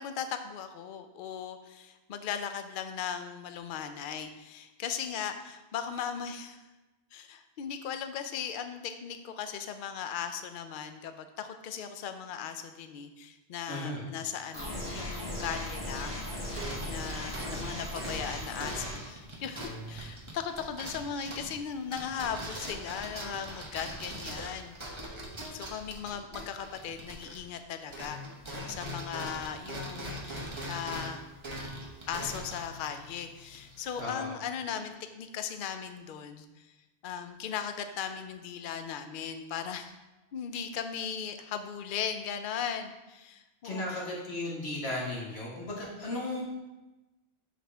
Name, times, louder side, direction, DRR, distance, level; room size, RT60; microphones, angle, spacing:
voice 1, 0.0-6.6 7.1-16.2 16.8-24.8 25.5-28.2 28.7-31.2 32.1-36.7 37.0-39.9 40.3-44.0, left 8 dB, 60° left, 8 dB, 0.6 m, -38 dB
voice 2, 13.7-14.1 34.0-34.3 43.6-46.5, left 1 dB, 75° left, -4 dB, 1.7 m, -35 dB
sound 1, 14.5-18.9, left 1 dB, 25° left, 1.3 m, -37 dB
sound 2, 16.0-27.6 27.9-34.0, right 1 dB, 30° right, 0.9 m, -41 dB
7.3 x 4.3 x 3.4 m, 1.1 s
omnidirectional pair, 1.1 m